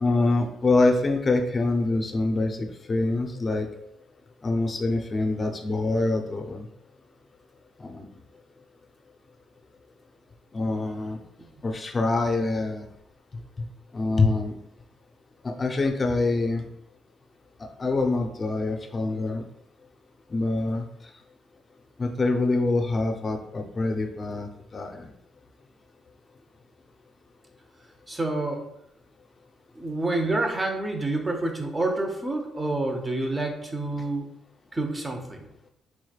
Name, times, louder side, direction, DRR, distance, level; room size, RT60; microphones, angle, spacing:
voice 1, 0.0-3.7 4.4-6.7 7.8-8.1 10.5-11.2 11.6-12.9 13.9-14.5 15.4-16.7 17.8-19.4 20.3-20.8 22.0-25.1, left 2 dB, 30° left, 3 dB, 0.6 m, -25 dB
voice 2, 28.1-28.6 29.7-34.3 34.7-35.5, right 2 dB, 20° right, 3 dB, 0.7 m, -28 dB
4.2 x 3.1 x 2.3 m, 0.76 s
cardioid pair, 90°, 0 cm